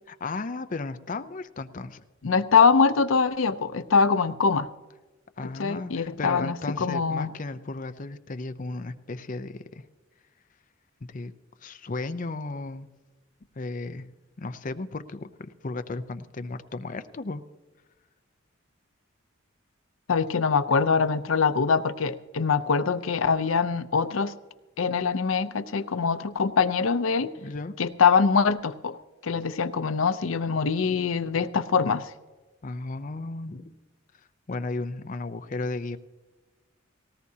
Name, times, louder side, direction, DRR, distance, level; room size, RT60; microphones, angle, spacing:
voice 1, 0.1-2.0 5.4-9.8 11.1-11.3 11.6-12.9 13.6-14.1 14.4-17.4 27.4-27.7 32.6-33.7 34.5-36.0, left 3 dB, 40° left, 10 dB, 0.6 m, -34 dB
voice 2, 2.2-4.7 5.6-7.3 20.1-24.3 24.8-27.3 27.8-29.0 29.2-32.1, left 5 dB, 90° left, 12 dB, 0.6 m, -23 dB
18.5 x 18.5 x 2.8 m, 1.2 s
head